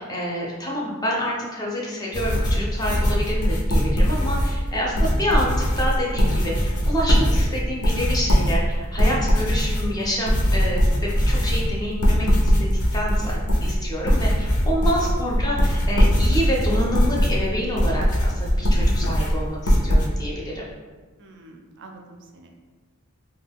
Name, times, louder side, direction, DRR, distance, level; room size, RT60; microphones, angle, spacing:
voice 1, 0.0-5.5 5.8-20.6, equal, 15° left, -4 dB, 0.5 m, -28 dB
sound 1, 2.1-20.1, equal, 85° left, 0.6 m, -21 dB
voice 2, 15.0-15.5 21.2-22.5, right 3 dB, 55° right, 2 dB, 0.4 m, -45 dB
2.5 x 2.2 x 3.4 m, 1.3 s
head